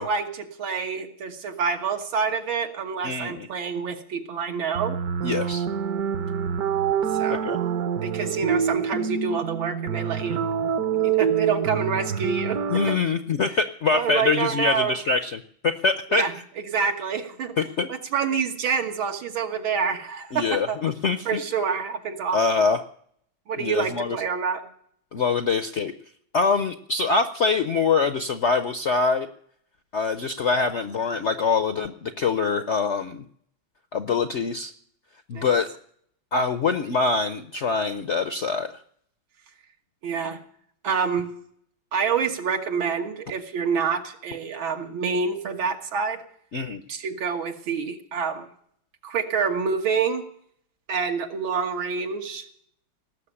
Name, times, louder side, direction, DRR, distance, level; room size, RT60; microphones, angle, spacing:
voice 1, 0.0-5.0 7.1-7.5 8.0-10.5 11.0-12.6 13.9-14.9 16.1-16.3 16.7-17.6 17.9-20.8 21.3-22.4 23.5-24.6 35.3-35.5 40.0-40.4 40.8-41.3 41.9-46.2 46.9-48.5 49.0-50.2 50.9-52.4, right 6 dB, 90° right, 4 dB, 2.3 m, -27 dB
voice 2, 3.0-3.5 5.2-5.6 7.3-7.6 12.7-16.3 17.6-17.9 20.3-21.4 22.3-22.8 23.6-24.2 25.1-25.9 26.3-29.3 29.9-33.2 33.9-34.7 35.3-35.7 36.3-38.8 46.5-46.8, left 4 dB, 70° left, 9 dB, 0.6 m, -24 dB
sound 1, 4.7-13.0, right 8 dB, 60° right, 1.2 m, -26 dB
18.5 x 7.1 x 9.8 m, 0.65 s
omnidirectional pair, 2.1 m